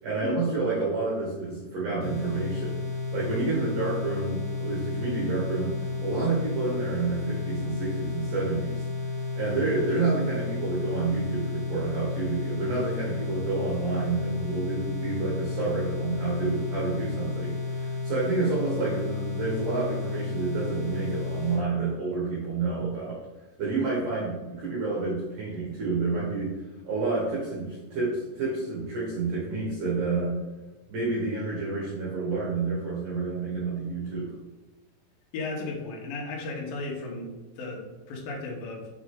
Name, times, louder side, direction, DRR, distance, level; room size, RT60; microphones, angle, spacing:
voice 1, 0.0-2.8 3.1-8.8 9.3-23.2 23.6-26.5 26.8-30.3 30.9-34.3, right 3 dB, 70° right, -6 dB, 2.0 m, -29 dB
sound 1, 2.0-21.6, left 4 dB, 45° left, 1.6 m, -32 dB
voice 2, 35.3-38.9, left 3 dB, 75° left, -2 dB, 2.1 m, -35 dB
6.3 x 6.2 x 3.7 m, 1.1 s
omnidirectional pair, 5.8 m